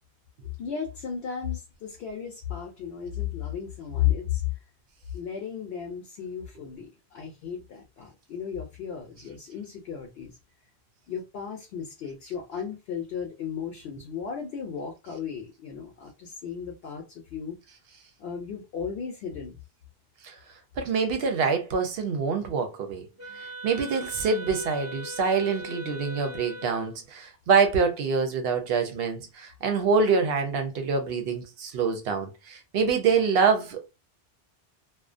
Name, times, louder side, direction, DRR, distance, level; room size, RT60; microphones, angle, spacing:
voice 1, 0.6-4.4 5.1-10.4 11.1-17.6 18.2-19.6, left 8 dB, 70° left, 0.8 m, -34 dB
voice 2, 20.8-23.1 23.3-33.9, right 5 dB, 70° right, 0.8 m, -25 dB
Wind instrument woodwind instrument, 23.2-27.0, equal, 15° right, 0.7 m, -40 dB
2.4 x 2.1 x 2.4 m
omnidirectional pair, 1.1 m